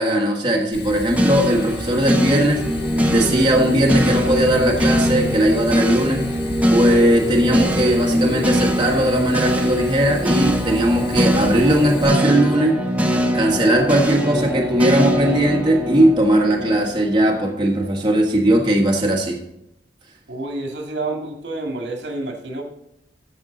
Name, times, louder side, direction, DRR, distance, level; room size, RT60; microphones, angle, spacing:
voice 1, 0.0-2.7 3.1-6.3 6.7-12.8 13.3-19.4, right 1 dB, 25° right, -1 dB, 1.4 m, -18 dB
Fire, 0.7-12.0, left 1 dB, 85° left, 3.5 m, -33 dB
sound 1, 1.2-17.4, equal, 10° right, 0.9 m, -22 dB
voice 2, 20.3-22.6, right 2 dB, 70° right, 2 dB, 2.1 m, -28 dB
14.0 x 5.4 x 3.9 m, 0.80 s
head